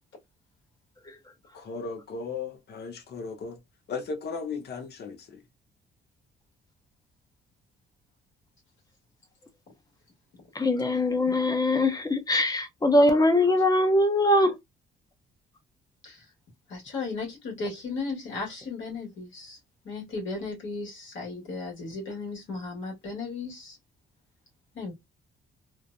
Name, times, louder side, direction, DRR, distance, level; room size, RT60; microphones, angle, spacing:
voice 1, 1.5-3.6 3.9-5.4, left 4 dB, 55° left, 0.8 m, -36 dB
voice 2, 10.5-14.6, left 1 dB, 20° left, 0.7 m, -22 dB
voice 3, 16.7-19.6 19.8-23.8 24.7-24.9, left 3 dB, 75° left, 1.6 m, -35 dB
3.2 x 2.1 x 2.5 m
cardioid pair, 90°, 20 cm